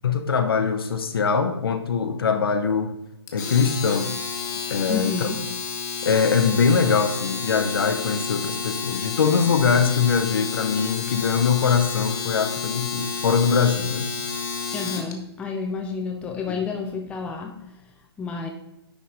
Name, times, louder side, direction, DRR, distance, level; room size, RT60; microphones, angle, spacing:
voice 1, 0.0-2.9 3.3-4.2 4.7-5.3 6.0-14.1 16.5-16.6, left 6 dB, 60° left, 6 dB, 1.2 m, -22 dB
Domestic sounds home sounds, 3.3-15.1, left 5 dB, 45° left, 1.6 m, -31 dB
voice 2, 4.9-5.4 14.7-17.7 18.2-18.5, left 5 dB, 10° left, 2 dB, 0.7 m, -30 dB
10.0 x 4.1 x 4.9 m, 0.86 s
figure-of-eight pair, 130°, 14 cm